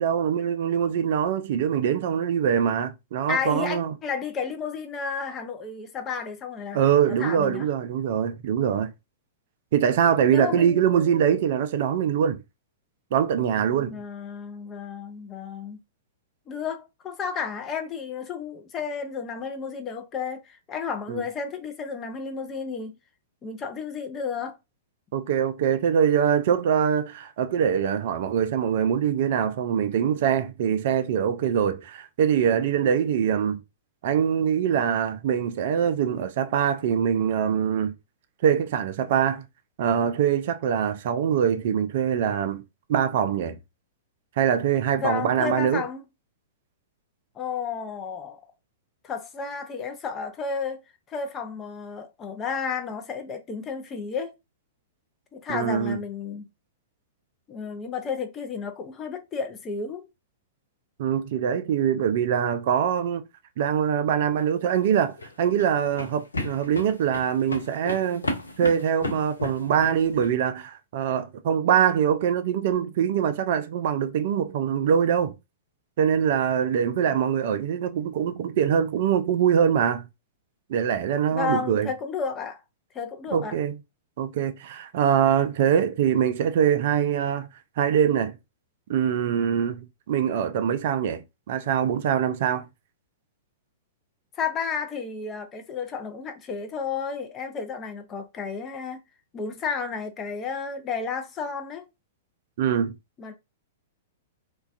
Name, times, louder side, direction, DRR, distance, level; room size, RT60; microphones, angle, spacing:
voice 1, 0.0-3.9 6.7-8.9 9.7-12.4 13.1-13.9 21.1-21.2 25.1-33.6 34.0-37.9 38.4-39.4 39.8-42.6 42.9-43.6 44.4-45.8 55.5-56.0 61.0-63.2 63.6-68.3 68.6-75.3 76.0-80.1 80.7-81.9 83.3-83.7 84.2-87.5 87.8-88.4 88.9-91.2 91.5-92.6 102.6-102.9, right 8 dB, 50° right, 0.3 m, -23 dB
voice 2, 3.3-6.8 7.1-7.7 10.3-11.2 13.7-15.8 16.5-23.0 23.4-24.6 45.0-46.0 47.3-48.4 49.0-50.8 51.1-54.3 55.3-56.4 57.5-60.1 81.3-82.6 82.9-83.6 94.4-99.0 99.3-101.8 103.2-103.3, left 5 dB, 25° left, 0.5 m, -32 dB
sound 1, 64.7-70.3, left 2 dB, 80° left, 0.5 m, -34 dB
2.3 x 2.3 x 2.4 m
figure-of-eight pair, 105°, 0 cm